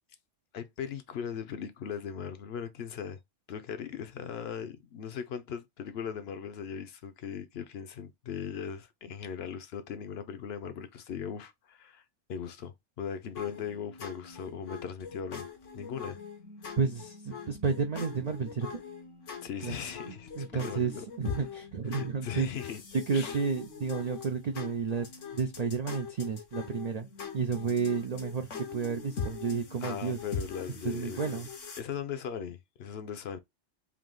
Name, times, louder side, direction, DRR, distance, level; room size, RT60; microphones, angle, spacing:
voice 1, 0.5-3.2 3.5-12.0 12.3-15.5 15.7-16.2 19.4-21.0 21.3-21.4 21.9-22.8 23.1-23.4 29.8-31.2 31.8-33.4, left 7 dB, 65° left, 0.8 m, -39 dB
sound 1, 13.3-31.8, left 6 dB, 90° left, 1.3 m, -42 dB
voice 2, 16.8-18.8 19.6-19.8 20.1-22.5 22.9-25.1 25.3-27.1 27.3-30.2 30.8-31.5, right 5 dB, 65° right, 0.4 m, -31 dB
3.6 x 2.8 x 3.8 m
omnidirectional pair, 1.2 m